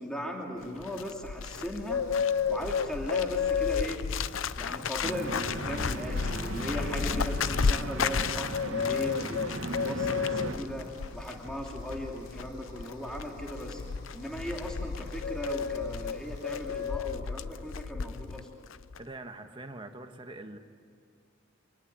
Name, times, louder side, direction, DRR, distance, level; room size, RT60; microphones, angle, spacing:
voice 1, 0.0-2.0 2.5-4.0 4.5-10.9 11.1-13.8 14.1-18.5, equal, 5° left, 0 dB, 2.8 m, -38 dB
Bird, 0.6-18.5 18.7-19.0, left 6 dB, 80° left, 0.6 m, -32 dB
sound 1, 1.8-16.9, equal, 50° left, 7.3 m, -53 dB
sound 2, 5.0-10.6, right 2 dB, 75° right, 2.4 m, -37 dB
voice 2, 19.0-20.6, right 2 dB, 25° right, 6 dB, 1.4 m, -43 dB
25.0 x 19.5 x 8.8 m, 2.3 s
head